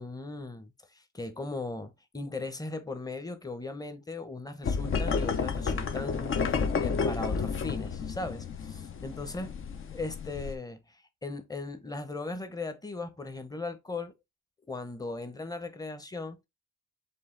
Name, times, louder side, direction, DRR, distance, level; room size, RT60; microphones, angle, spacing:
voice 1, 0.0-9.5 9.9-14.1 14.7-16.4, left 3 dB, 10° left, 0.9 m, -38 dB
sound 1, 4.6-10.5, left 5 dB, 45° left, 0.7 m, -31 dB
5.4 x 2.4 x 3.8 m
cardioid pair, 90°, 30 cm